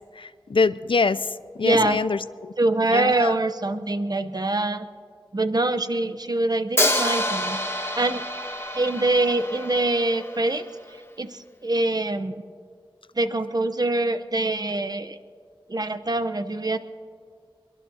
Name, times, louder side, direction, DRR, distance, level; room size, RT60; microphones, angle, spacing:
voice 1, 0.2-1.3 1.6-2.5 2.9-3.3, left 4 dB, 65° left, 15 dB, 0.4 m, -24 dB
voice 2, 1.6-2.0 2.6-4.9 5.3-7.6 7.9-8.2 8.7-10.7 11.2-12.4 13.2-15.2 15.7-16.8, right 2 dB, 45° right, 10 dB, 0.7 m, -24 dB
Hi-hat, 6.8-10.7, left 1 dB, 25° left, 1.5 m, -27 dB
23.0 x 22.0 x 2.8 m, 2.1 s
wide cardioid pair, 60°, 9 cm